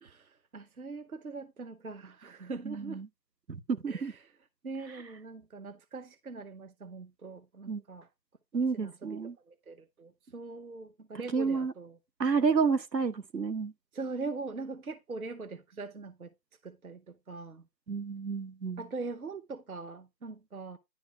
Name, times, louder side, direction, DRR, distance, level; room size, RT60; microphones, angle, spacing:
voice 1, 0.0-3.0 3.9-4.3 4.6-8.1 8.7-12.0 13.9-16.3 16.6-17.6 18.8-20.8, right 3 dB, 60° right, 0.9 m, -42 dB
voice 2, 2.6-3.1 3.5-4.1 7.7-7.8 8.5-9.3 11.3-11.7 12.2-13.7 17.9-18.8, right 5 dB, 80° right, 1.4 m, -30 dB
10.5 x 3.6 x 5.8 m
figure-of-eight pair, 175°, 50 cm